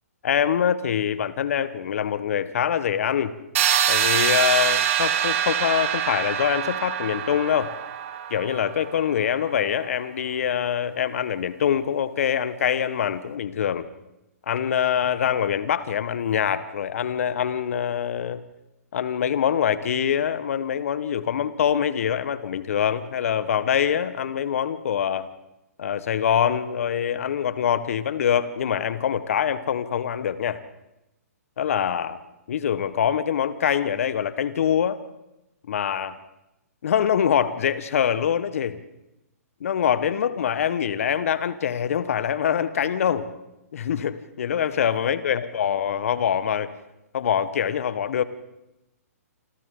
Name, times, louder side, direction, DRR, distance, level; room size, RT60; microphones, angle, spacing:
voice 1, 0.2-3.3 3.9-7.7 8.3-13.9 14.5-18.4 18.9-25.3 25.8-30.6 31.6-32.2 32.5-35.0 35.7-36.2 36.8-38.8 39.6-43.3 43.7-46.7 47.1-48.2, left 8 dB, 60° left, 13 dB, 1.5 m, -24 dB
sound 1, 3.5-9.3, right 9 dB, 50° right, 2.6 m, -25 dB
28.0 x 26.0 x 3.9 m, 0.92 s
figure-of-eight pair, 125°, 9 cm